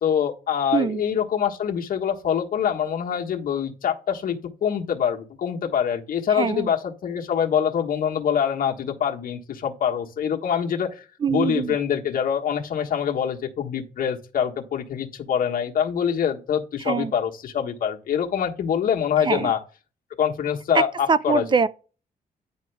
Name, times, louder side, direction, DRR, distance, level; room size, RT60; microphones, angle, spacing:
voice 1, 0.0-10.9 11.3-19.6 20.2-21.4, left 8 dB, 70° left, 1.4 m, -25 dB
voice 2, 6.3-6.7 11.2-11.8 16.8-17.1 19.2-19.5 20.7-21.7, right 5 dB, 30° right, 0.4 m, -23 dB
9.7 x 5.1 x 3.4 m
cardioid pair, 115°, 15 cm